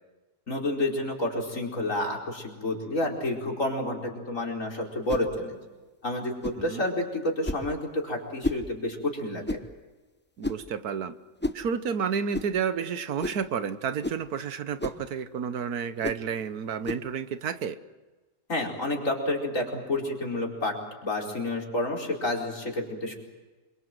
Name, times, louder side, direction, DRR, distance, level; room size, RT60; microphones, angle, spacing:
voice 1, 0.5-5.6 6.0-9.6 18.5-20.7 21.0-23.1, left 1 dB, 55° left, -1 dB, 5.1 m, -29 dB
sound 1, 5.1-5.3 6.4-6.6 7.4-7.7 8.4-8.7 9.5-9.7 10.4-10.7 11.4-11.6 12.3-12.5 13.2-13.5 14.0-14.2 14.8-15.0 16.0-16.2 16.8-17.1, left 1 dB, 10° left, 0.6 m, -32 dB
voice 2, 10.4-11.1 11.5-17.8, right 7 dB, 80° right, 12 dB, 1.5 m, -31 dB
27.5 x 24.0 x 7.7 m, 1.2 s
omnidirectional pair, 1.6 m